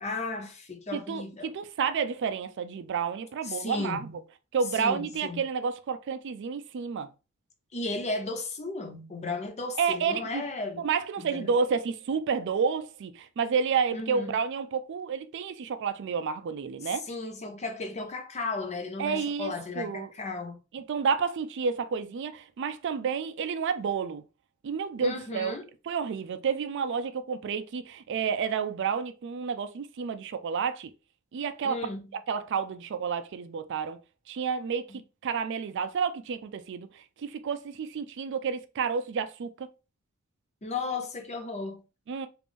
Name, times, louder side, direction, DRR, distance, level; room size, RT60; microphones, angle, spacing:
voice 1, 0.0-1.5 3.4-4.2 4.8-5.4 7.7-10.8 11.2-11.5 13.9-14.3 16.8-20.6 25.0-25.6 31.6-32.0 40.6-41.8, left 3 dB, 30° left, 0.7 m, -35 dB
voice 2, 0.9-4.1 4.5-7.1 9.8-10.4 10.8-17.1 19.0-20.1 20.7-24.2 24.6-25.6 25.9-30.9 31.3-31.8 32.3-34.0 34.3-34.8 35.2-39.7 42.1-42.3, right 6 dB, 55° right, 0.4 m, -30 dB
3.4 x 2.5 x 3.3 m
head